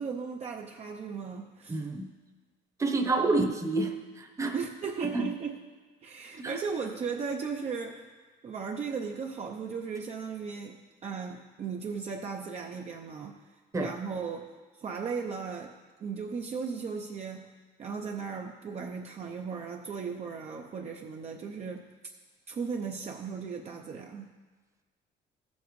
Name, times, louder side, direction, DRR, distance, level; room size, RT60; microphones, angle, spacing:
voice 1, 0.0-1.8 3.2-3.3 4.5-5.6 6.0-8.1 8.4-13.3 13.8-14.5 14.8-15.8 16.0-17.5 17.8-21.9 22.5-24.3, right 5 dB, 40° right, 1 dB, 0.6 m, -36 dB
voice 2, 1.7-2.1 2.8-4.6 5.1-5.3 6.4-6.6 13.7-13.9, right 2 dB, 20° right, 5 dB, 1.0 m, -28 dB
15.5 x 7.3 x 3.1 m, 1.4 s
cardioid pair, 110°, 17 cm